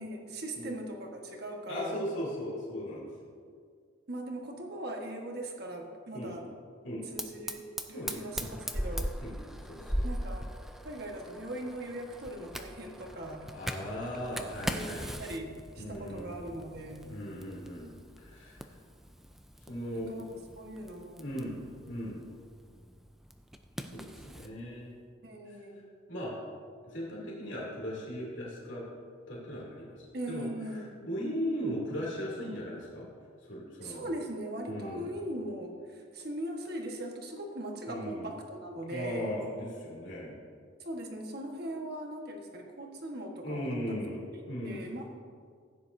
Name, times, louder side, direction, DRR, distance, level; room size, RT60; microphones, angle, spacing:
voice 1, 0.0-2.0 4.1-6.4 7.1-9.1 10.0-10.5 10.8-13.4 14.6-17.1 19.9-20.3 20.6-21.2 25.2-25.9 30.1-30.9 33.8-39.3 40.8-43.9 44.3-45.0, right 1 dB, 50° right, 1 dB, 1.4 m, -40 dB
voice 2, 1.7-3.1 6.1-6.3 6.8-7.1 7.9-8.2 9.2-9.4 9.7-10.0 13.5-15.1 15.8-16.3 17.0-17.9 18.2-18.6 19.7-20.1 21.2-22.2 23.8-24.9 26.1-26.3 26.8-28.8 29.3-30.5 30.7-33.1 33.4-34.1 34.7-35.1 37.9-38.3 38.9-40.4 43.4-44.2 44.5-44.8, equal, 70° left, -5 dB, 2.8 m, -38 dB
Fire, 7.2-24.5, equal, ahead, 0.4 m, -40 dB
15.5 x 9.7 x 2.7 m, 2.1 s
head